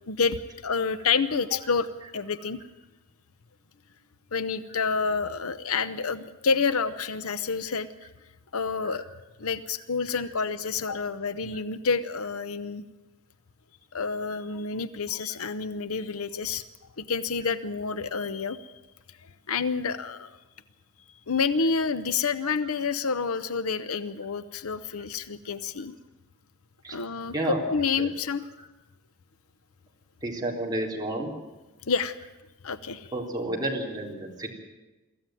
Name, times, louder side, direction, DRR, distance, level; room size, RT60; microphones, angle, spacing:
voice 1, 0.0-1.9 2.1-2.6 4.3-7.9 8.5-9.0 9.4-12.8 13.9-16.6 17.0-18.7 19.5-20.4 21.3-26.0 26.9-28.4 31.9-32.2 32.6-33.1, left 5 dB, 75° left, 13 dB, 0.8 m, -28 dB
voice 2, 30.2-31.3 33.1-34.5, right 1 dB, 20° right, -2 dB, 3.8 m, -30 dB
23.5 x 14.5 x 9.2 m, 1.1 s
head